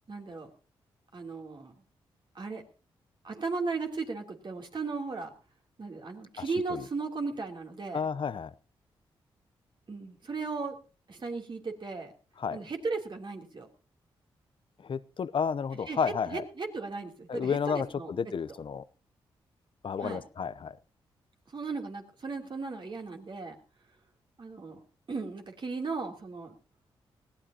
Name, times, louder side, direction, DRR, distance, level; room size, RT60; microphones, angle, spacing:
voice 1, 0.1-0.5 1.1-1.7 2.3-2.6 3.2-5.3 5.8-8.0 9.9-10.8 11.1-12.1 12.5-13.7 15.9-16.0 16.3-18.1 20.0-20.2 21.5-23.6 24.4-24.8 25.1-26.6, right 4 dB, 50° right, 2 dB, 3.2 m, -36 dB
voice 2, 7.9-8.5 12.4-12.6 14.8-16.4 17.3-18.8 19.8-20.8, left 6 dB, 55° left, 17 dB, 0.7 m, -31 dB
20.5 x 15.0 x 2.9 m, 0.35 s
supercardioid pair, 45°, 10 cm